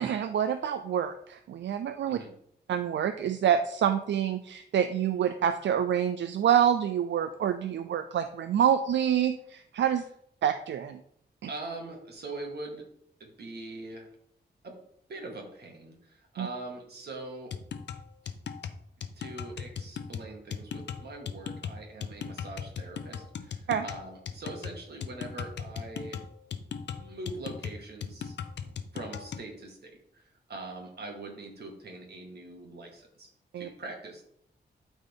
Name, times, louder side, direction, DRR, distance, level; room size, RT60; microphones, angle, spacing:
voice 1, 0.0-2.2 2.7-10.0 10.4-11.0 16.4-16.5 23.7-23.8 33.5-33.7, right 9 dB, 90° right, 9 dB, 0.4 m, -27 dB
voice 2, 11.5-12.8 13.2-14.1 14.6-14.8 15.1-17.5 18.2-18.3 19.2-26.2 26.9-28.4 28.6-33.3 33.6-34.2, right 2 dB, 65° right, 1 dB, 2.0 m, -42 dB
sound 1, 17.5-29.5, left 7 dB, 75° left, 0.6 m, -38 dB
12.0 x 4.1 x 3.7 m, 0.69 s
wide cardioid pair, 125°, 18 cm